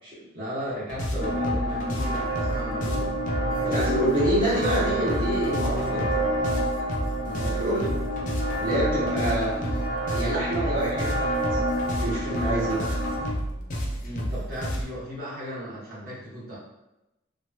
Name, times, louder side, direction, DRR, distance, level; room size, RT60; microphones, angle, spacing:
voice 1, 0.3-3.3 7.2-7.6 9.0-9.3 9.6-9.7 14.0-16.6, equal, 50° right, -8 dB, 1.3 m, -36 dB
sound 1, 0.9-14.8, equal, 45° left, 0.5 m, -31 dB
sound 2, 1.2-13.3, right 1 dB, 80° left, 0.7 m, -29 dB
voice 2, 3.6-6.0 7.4-7.9 8.6-9.5 10.1-11.6 12.0-12.9, right 1 dB, 25° right, -12 dB, 0.8 m, -27 dB
3.0 x 2.3 x 2.8 m, 0.93 s
head